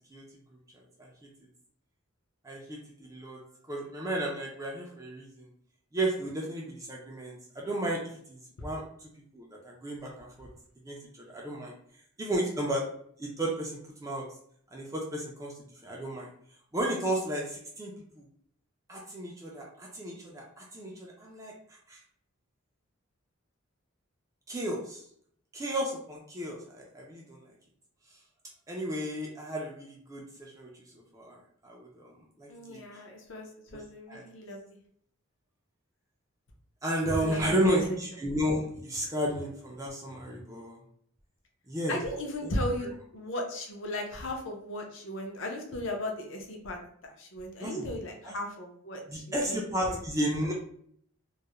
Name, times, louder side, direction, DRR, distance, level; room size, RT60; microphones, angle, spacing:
voice 1, 2.4-3.4 3.7-5.5 5.9-8.8 9.3-10.5 10.8-11.8 12.2-12.9 13.2-14.2 14.7-15.5 15.8-16.3 16.7-18.2 18.9-21.5 21.9-22.0 24.5-25.0 25.5-27.5 28.7-30.9 31.1-31.4 31.6-32.1 32.4-32.8 33.7-34.2 36.8-40.8 41.7-42.0 42.4-42.5 42.8-42.9 47.6-47.9 48.2-48.4 49.1-50.5, right 1 dB, 15° right, -1 dB, 0.3 m, -33 dB
voice 2, 32.5-34.8 37.1-38.0 41.9-46.8 47.0-49.6 49.9-50.0, left 1 dB, 60° left, 2 dB, 0.5 m, -36 dB
2.3 x 2.0 x 2.9 m, 0.65 s
head